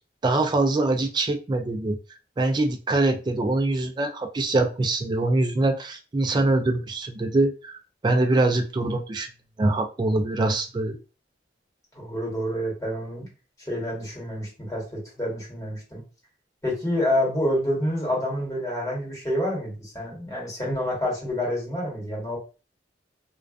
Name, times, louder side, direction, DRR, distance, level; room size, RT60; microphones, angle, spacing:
voice 1, 0.2-2.0 2.4-7.7 8.0-9.3 9.6-11.0, right 2 dB, 25° right, 5 dB, 0.3 m, -23 dB
voice 2, 11.9-13.3 13.6-16.0 16.6-22.4, left 1 dB, 20° left, -5 dB, 1.3 m, -28 dB
2.3 x 2.3 x 2.3 m, 0.33 s
head